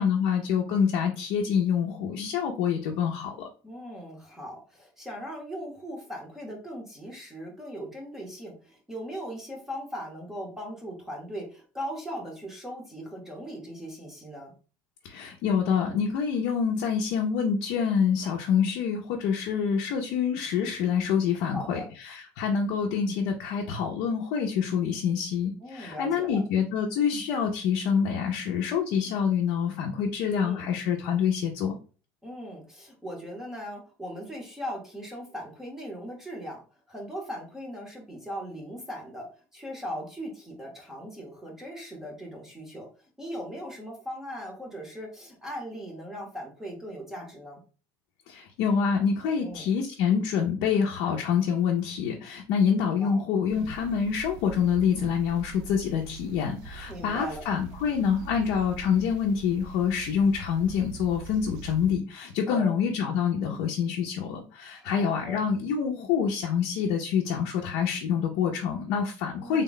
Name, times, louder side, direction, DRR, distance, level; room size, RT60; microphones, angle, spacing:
voice 1, 0.0-3.5 15.0-31.8 48.3-69.6, left 7 dB, 60° left, 0 dB, 0.5 m, -26 dB
voice 2, 3.6-14.5 21.5-21.9 25.6-26.4 30.3-30.7 32.2-36.6 36.9-39.3 39.5-47.6 49.4-49.7 53.0-53.2 56.9-57.4 62.5-62.7 64.7-65.4 69.3-69.6, equal, 5° right, 0 dB, 0.8 m, -39 dB
sound 1, 53.5-62.0, right 6 dB, 70° right, 0.5 m, -44 dB
3.5 x 2.1 x 3.8 m, 0.36 s
cardioid pair, 175°, 7 cm